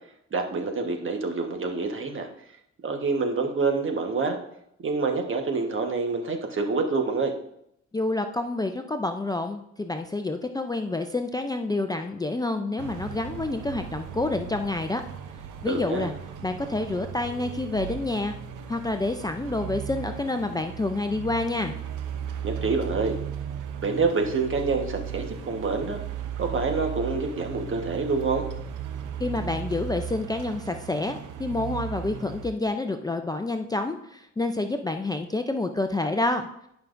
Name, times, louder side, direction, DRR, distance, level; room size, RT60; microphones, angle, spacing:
voice 1, 0.3-2.3 2.8-4.4 4.8-7.3 15.7-16.1 22.4-23.1 23.8-26.0 26.4-28.5, right 4 dB, 40° right, 4 dB, 1.4 m, -27 dB
voice 2, 7.9-15.0 15.6-16.1 16.4-18.3 18.7-21.7 29.2-36.5, left 2 dB, 15° left, 6 dB, 0.5 m, -28 dB
sound 1, 12.8-32.5, right 8 dB, 85° right, 0.8 m, -36 dB
11.0 x 5.8 x 2.6 m, 0.76 s
cardioid pair, 90°, 30 cm